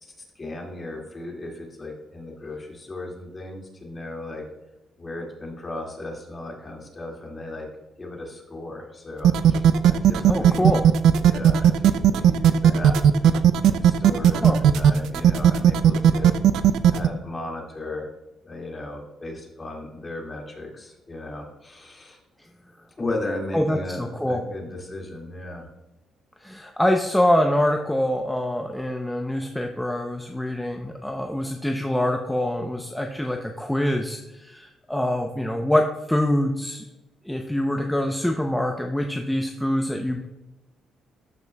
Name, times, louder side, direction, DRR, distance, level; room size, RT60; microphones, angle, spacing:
voice 1, 0.0-4.4 5.0-7.7 8.0-10.7 11.2-16.4 16.9-18.1 18.4-22.2 23.0-25.7, left 2 dB, 30° left, 0 dB, 2.1 m, -36 dB
sound 1, 9.2-17.1, right 9 dB, 85° right, 0.4 m, -16 dB
voice 2, 10.3-10.8 14.4-14.6 23.5-24.4 26.4-36.8 37.3-40.3, left 1 dB, 5° left, 3 dB, 0.6 m, -25 dB
13.0 x 6.0 x 2.3 m, 1.0 s
cardioid pair, 90°, 0 cm